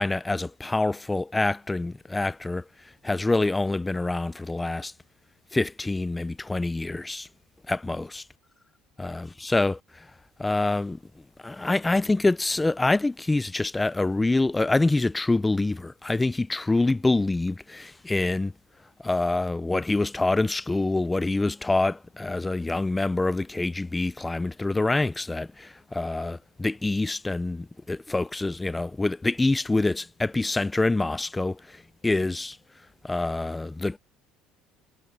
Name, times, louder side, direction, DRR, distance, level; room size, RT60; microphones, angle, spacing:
voice 1, 0.0-2.6 3.0-4.9 5.5-7.3 7.7-8.2 9.0-10.1 10.4-11.0 11.4-18.5 19.0-32.6 33.0-34.0, left 2 dB, 10° left, 0.4 m, -26 dB
cardioid pair, 150°, 0 cm